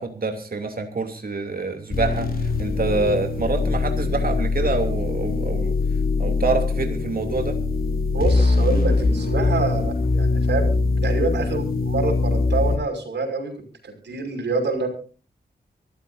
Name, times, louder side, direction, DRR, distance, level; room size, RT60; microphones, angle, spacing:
voice 1, 0.0-5.7 6.2-7.6, right 3 dB, 55° right, 5 dB, 2.8 m, -26 dB
sound 1, 1.9-12.8, left 3 dB, 60° left, 5.0 m, -22 dB
voice 2, 8.1-10.8 11.0-13.5 13.8-14.9, right 3 dB, 85° right, 5 dB, 5.7 m, -26 dB
25.0 x 13.5 x 2.6 m, 0.38 s
cardioid pair, 70°, 18 cm